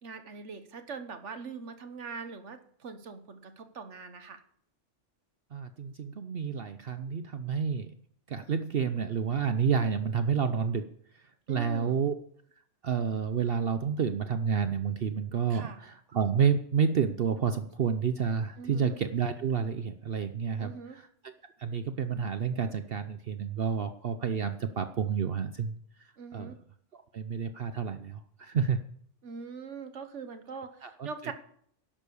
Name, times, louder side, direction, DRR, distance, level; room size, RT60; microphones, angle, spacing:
voice 1, 0.0-4.4 11.5-12.0 15.5-15.8 18.6-19.0 20.6-21.0 26.2-26.6 29.2-31.3, right 5 dB, 70° right, 9 dB, 1.5 m, -42 dB
voice 2, 5.5-7.9 8.3-10.9 11.5-12.1 12.8-21.3 21.6-25.8 26.3-26.5 26.9-28.8 30.8-31.3, right 6 dB, 55° right, 9 dB, 0.9 m, -30 dB
11.5 x 11.0 x 7.0 m, 0.62 s
omnidirectional pair, 1.2 m